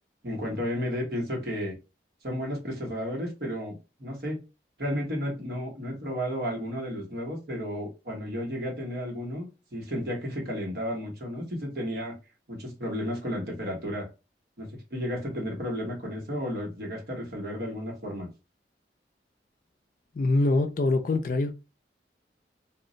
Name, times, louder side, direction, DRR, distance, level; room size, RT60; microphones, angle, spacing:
voice 1, 0.2-1.7 2.2-4.4 4.8-12.1 12.5-14.1 14.6-18.3, equal, 60° right, 1.1 m, -33 dB
voice 2, 20.1-21.5, left 2 dB, 50° left, 0.4 m, -24 dB
2.4 x 2.0 x 3.8 m
head